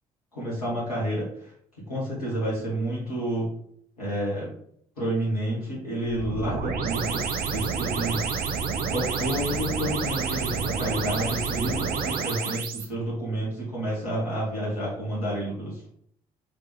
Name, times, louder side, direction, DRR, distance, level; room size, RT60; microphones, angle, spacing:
voice 1, 0.3-1.2 1.9-3.5 4.0-4.5 5.0-8.2 8.8-15.9, right 1 dB, 90° left, -8 dB, 1.7 m, -30 dB
sound 1, 6.1-12.9, right 5 dB, 50° right, 0.7 m, -29 dB
3.9 x 3.4 x 3.4 m, 0.66 s
figure-of-eight pair, 45°, 19 cm